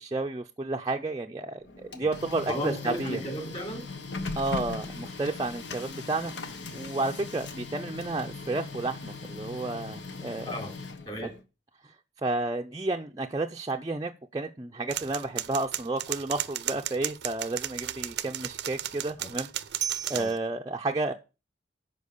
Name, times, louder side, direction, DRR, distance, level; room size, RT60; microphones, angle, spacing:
voice 1, 0.0-3.2 4.4-10.6 12.2-19.5 20.1-21.1, right 2 dB, 20° right, 0.5 m, -31 dB
Printer, 1.6-11.4, left 3 dB, 80° left, 1.2 m, -39 dB
voice 2, 2.5-3.8 10.5-10.7 11.1-11.3 19.2-19.3 20.1-20.3, equal, 35° left, 3.3 m, -34 dB
sound 1, 14.9-20.4, right 12 dB, 70° right, 0.6 m, -34 dB
11.0 x 4.6 x 6.6 m
head